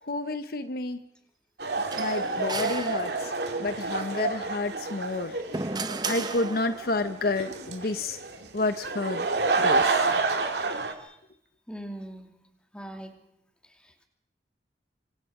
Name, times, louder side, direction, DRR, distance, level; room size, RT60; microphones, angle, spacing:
voice 1, 0.0-1.0 2.0-3.3 3.6-5.4 5.9-8.2 8.5-9.3 9.6-10.1, left 2 dB, 55° left, 10 dB, 1.0 m, -30 dB
sound 1, 1.6-10.9, right 3 dB, 70° right, 2.3 m, -29 dB
sound 2, 1.9-3.6 5.0-7.0, right 3 dB, 25° right, 0.9 m, -35 dB
voice 2, 10.7-11.2 11.7-12.3 12.7-13.1 13.8-14.0, right 1 dB, 5° left, 3 dB, 2.8 m, -41 dB
26.0 x 25.5 x 5.0 m, 0.76 s
head